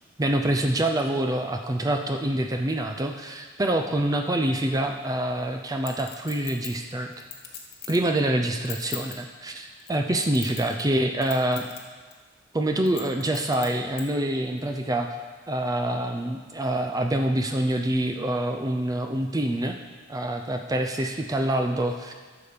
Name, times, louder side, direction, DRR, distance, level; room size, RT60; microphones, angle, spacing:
voice 1, 0.2-7.3 7.9-11.7 12.5-15.1 15.5-19.8 20.1-22.1, right 1 dB, 20° right, 4 dB, 0.5 m, -26 dB
Chink clink, 5.9-8.1 8.5-9.2 9.8-10.9 11.2-11.8 12.1-12.2 12.9-14.0 14.6-14.7, left 9 dB, 55° left, 1.6 m, -39 dB
12.0 x 6.9 x 5.1 m, 1.5 s
head